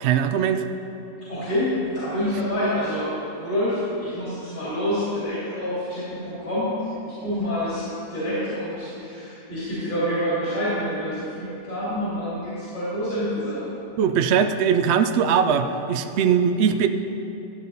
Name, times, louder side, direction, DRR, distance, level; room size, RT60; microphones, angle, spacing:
voice 1, 0.0-0.7 14.0-16.9, right 7 dB, 65° right, 8 dB, 0.6 m, -20 dB
voice 2, 1.3-13.6, equal, 65° left, -11 dB, 3.3 m, -27 dB
12.5 x 8.3 x 4.0 m, 2.9 s
omnidirectional pair, 1.5 m